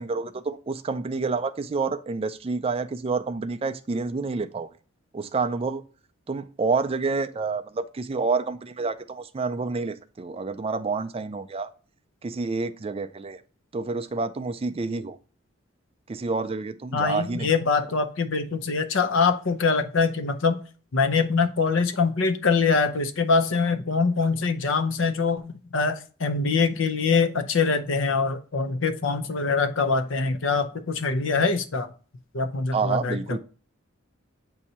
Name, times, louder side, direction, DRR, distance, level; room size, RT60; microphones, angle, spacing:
voice 1, 0.0-4.7 5.1-5.8 6.3-11.7 12.2-13.4 13.7-15.2 16.1-17.5 32.7-33.4, right 4 dB, 30° right, 0.4 m, -28 dB
voice 2, 16.9-20.6 20.9-31.9 32.3-33.4, left 4 dB, 65° left, 0.7 m, -24 dB
8.2 x 2.8 x 4.3 m
head